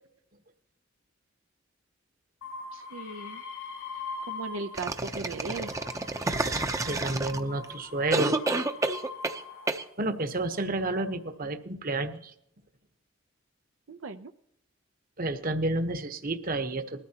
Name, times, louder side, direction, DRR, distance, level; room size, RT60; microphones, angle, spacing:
sound 1, 2.4-4.9 5.3-9.9 10.6-11.2, left 4 dB, 80° left, 2.8 m, -42 dB
voice 1, 2.7-3.4 4.3-5.8 13.9-14.3, right 3 dB, 80° right, 9 dB, 0.6 m, -37 dB
sound 2, 4.8-7.6 8.1-9.4 9.7-9.8, right 2 dB, 15° right, 0.6 m, -29 dB
voice 2, 6.4-8.4 10.0-12.3 15.2-17.0, right 2 dB, 45° right, 8 dB, 1.1 m, -31 dB
20.5 x 13.5 x 2.9 m, 0.75 s
head